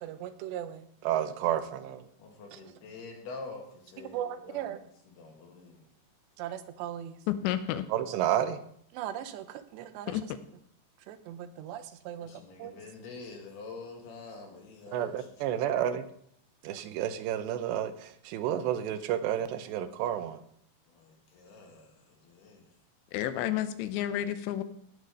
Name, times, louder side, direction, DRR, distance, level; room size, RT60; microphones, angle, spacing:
voice 1, 0.0-2.1 4.1-4.8 6.4-7.2 7.9-8.6 8.9-10.2 11.1-12.3 12.6-12.7 14.9-16.1 16.6-20.4, right 10 dB, 85° right, 11 dB, 3.0 m, -32 dB
voice 2, 2.2-5.9 12.2-15.6 20.9-22.7, left 3 dB, 70° left, 2 dB, 3.8 m, -47 dB
voice 3, 7.3-7.8 10.1-10.2 23.1-24.6, left 12 dB, 85° left, 11 dB, 3.0 m, -30 dB
18.0 x 6.7 x 5.4 m, 0.67 s
omnidirectional pair, 5.0 m